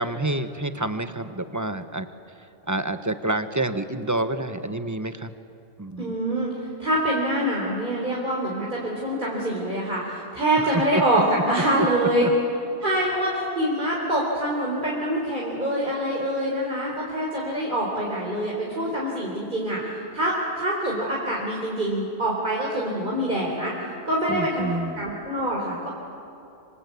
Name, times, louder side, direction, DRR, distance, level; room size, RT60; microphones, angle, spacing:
voice 1, 0.0-2.1 2.7-5.3 5.8-6.1 10.6-11.0 12.2-12.3 24.3-25.1, right 2 dB, 15° right, 9 dB, 1.1 m, -28 dB
voice 2, 6.0-6.5 6.8-12.2 12.8-23.7 24.1-24.7 25.0-25.9, right 1 dB, 40° right, -4 dB, 4.1 m, -25 dB
27.0 x 25.5 x 8.4 m, 2.8 s
omnidirectional pair, 1.2 m